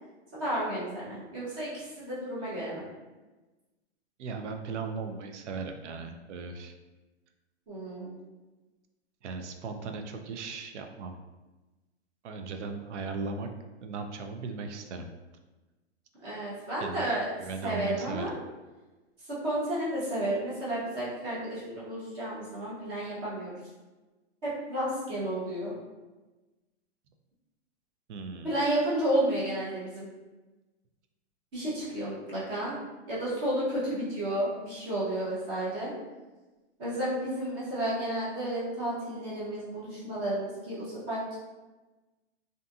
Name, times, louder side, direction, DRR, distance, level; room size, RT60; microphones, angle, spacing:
voice 1, 0.3-2.8 7.7-8.1 16.2-17.3 17.6-18.3 19.2-23.5 24.4-25.7 28.4-30.1 31.5-32.8 33.1-35.9 36.8-41.4, right 1 dB, 20° right, -8 dB, 0.6 m, -32 dB
voice 2, 4.2-6.7 9.2-11.1 12.2-13.5 13.8-15.1 16.8-17.1 17.4-18.3 28.1-28.6, right 4 dB, 90° right, 5 dB, 0.5 m, -37 dB
2.6 x 2.6 x 2.2 m, 1.2 s
hypercardioid pair, 160°, 34 cm